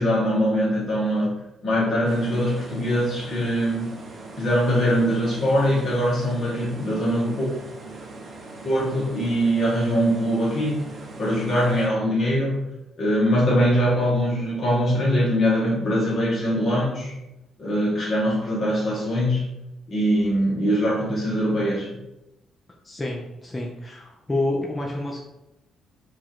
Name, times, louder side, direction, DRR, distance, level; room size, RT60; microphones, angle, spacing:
voice 1, 0.0-1.3 1.6-3.9 4.4-7.5 8.6-10.8 11.2-12.6 13.0-17.1 17.6-19.5 19.9-21.9, equal, 40° left, -5 dB, 1.2 m, -22 dB
sound 1, 2.0-11.9, right 2 dB, 35° right, 0.7 m, -41 dB
voice 2, 22.8-25.2, left 2 dB, 10° left, -2 dB, 0.5 m, -28 dB
4.6 x 2.5 x 4.3 m, 0.93 s
cardioid pair, 150°, 0 cm